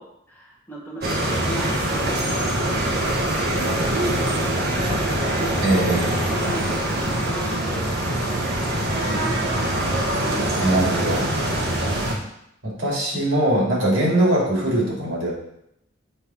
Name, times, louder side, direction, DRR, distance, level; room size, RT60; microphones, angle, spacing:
voice 1, 0.0-2.7 3.8-5.6 6.3-7.9 8.2-10.7, equal, 10° left, -4 dB, 1.3 m, -37 dB
sound 1, 1.0-12.1, right 1 dB, 50° right, 1.3 m, -23 dB
voice 2, 5.6-6.3 10.6-11.3 12.6-15.3, right 1 dB, 80° right, -4 dB, 3.0 m, -21 dB
7.8 x 3.4 x 5.8 m, 0.78 s
head